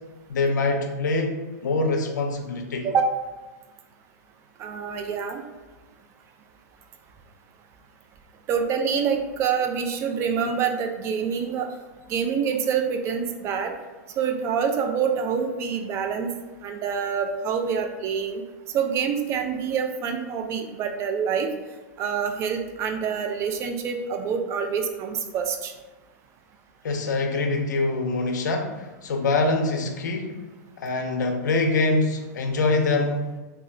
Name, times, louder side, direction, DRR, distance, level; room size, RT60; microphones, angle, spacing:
voice 1, 0.3-2.9 26.8-30.3 30.8-33.3, left 3 dB, 85° left, 4 dB, 0.5 m, -24 dB
voice 2, 4.6-5.4 8.5-11.7 12.1-13.7 14.2-16.3 16.6-18.4 18.7-21.5 22.0-25.7, right 6 dB, 30° right, 4 dB, 0.3 m, -26 dB
2.3 x 2.1 x 3.7 m, 1.2 s
hypercardioid pair, 130°, 9 cm